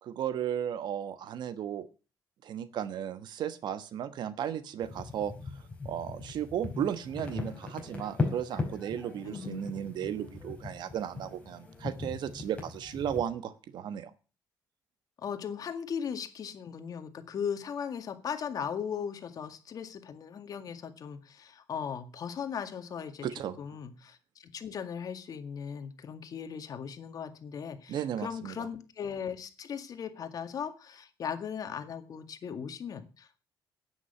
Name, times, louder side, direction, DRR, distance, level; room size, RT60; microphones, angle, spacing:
voice 1, 0.0-1.9 2.4-5.3 5.8-14.1 23.2-23.6 27.9-28.7, right 9 dB, 70° right, 14 dB, 1.3 m, -35 dB
sound 1, 4.8-13.2, left 4 dB, 15° left, 5.3 m, -38 dB
voice 2, 9.2-9.7 15.2-23.3 23.6-33.4, left 7 dB, 55° left, 9 dB, 2.0 m, -38 dB
10.0 x 9.0 x 8.1 m, 0.34 s
cardioid pair, 120°, 8 cm